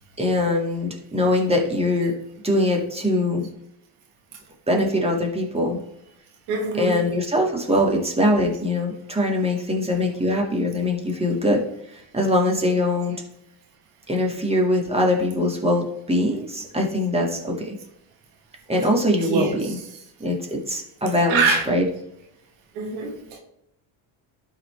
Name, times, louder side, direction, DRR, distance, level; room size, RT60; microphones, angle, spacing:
voice 1, 0.2-2.1 2.4-3.5 4.7-5.8 6.8-11.6 12.1-13.2 14.1-17.8 18.7-19.8 20.2-21.9, left 1 dB, 10° right, 0 dB, 2.1 m, -22 dB
voice 2, 6.5-7.0 19.2-19.5 21.3-21.6 22.8-23.4, right 4 dB, 85° right, 3 dB, 1.6 m, -23 dB
12.0 x 4.2 x 3.4 m, 0.80 s
supercardioid pair, 70°, 50 cm